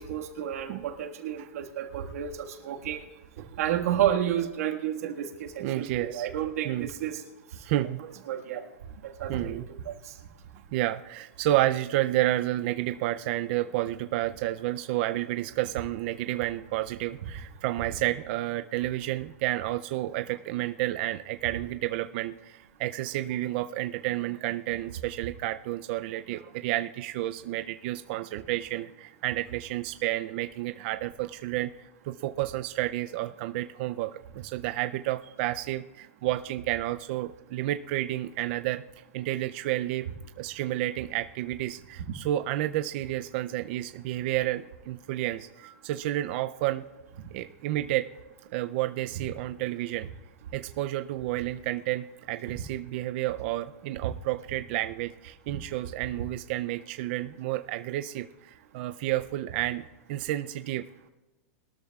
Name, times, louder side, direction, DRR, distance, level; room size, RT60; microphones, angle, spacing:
voice 1, 0.0-3.1 3.6-7.2 8.3-8.6 9.0-10.1 42.0-42.1 55.5-55.6, right 10 dB, 75° right, 3 dB, 1.6 m, -31 dB
voice 2, 5.6-6.3 6.6-6.9 7.6-8.0 9.3-9.7 10.7-38.8 39.1-40.1 40.4-46.8 47.3-48.1 48.5-50.1 50.5-59.8 60.1-60.9, right 15 dB, 45° right, 9 dB, 0.4 m, -30 dB
22.0 x 12.5 x 2.3 m, 1.1 s
supercardioid pair, 160°, 8 cm